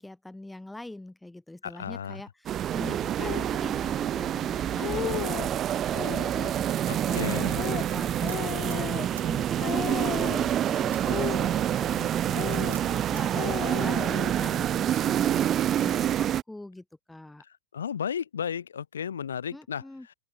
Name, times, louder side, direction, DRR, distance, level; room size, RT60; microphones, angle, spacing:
voice 1, 0.0-7.5 7.9-13.4 13.8-17.4 19.5-20.1, left 2 dB, 5° left, 2.4 m, -43 dB
voice 2, 1.6-2.2 6.9-7.6 17.4-20.1, left 8 dB, 80° left, 2.3 m, -34 dB
sound 1, 2.5-16.4, right 11 dB, 30° right, 0.8 m, -27 dB
Speech, 3.2-3.5 4.2-4.3 4.6-5.5 5.9-6.5 7.1-9.3 9.6-10.6 11.0-12.0 12.3-13.0 13.3-14.5, left 15 dB, 40° left, 2.0 m, -35 dB
sound 2, 6.0-13.5, right 8 dB, 75° right, 2.6 m, -52 dB
open air
hypercardioid pair, 95°, 0 cm